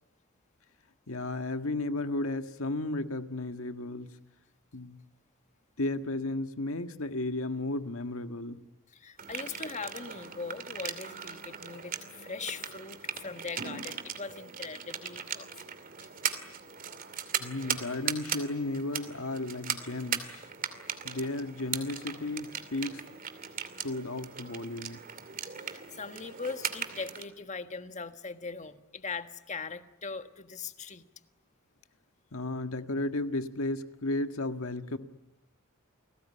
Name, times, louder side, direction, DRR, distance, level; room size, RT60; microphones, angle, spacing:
voice 1, 1.1-4.2 4.7-5.0 5.8-8.6 17.4-20.4 21.0-23.0 23.8-25.0 32.3-35.0, left 2 dB, 75° left, 8 dB, 1.7 m, -34 dB
voice 2, 8.9-16.4 25.6-31.1, left 4 dB, 35° left, 9 dB, 1.5 m, -41 dB
sound 1, 9.2-27.2, right 7 dB, 40° right, 2.5 m, -38 dB
30.0 x 20.0 x 9.9 m, 0.91 s
head